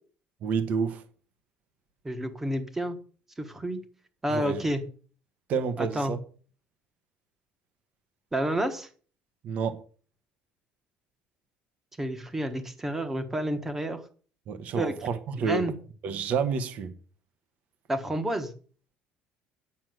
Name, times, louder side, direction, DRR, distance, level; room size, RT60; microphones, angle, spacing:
voice 1, 0.4-1.0 4.3-4.6 5.5-6.2 9.4-9.8 14.5-15.7 16.0-16.9, right 6 dB, 45° right, 1.3 m, -29 dB
voice 2, 2.0-3.0 3.4-3.8 4.2-4.8 5.8-6.1 8.3-8.9 12.0-14.0 14.7-14.9 15.4-15.7 17.9-18.5, right 1 dB, 10° right, 1.4 m, -29 dB
9.7 x 6.4 x 7.6 m
cardioid pair, 170°, 3 cm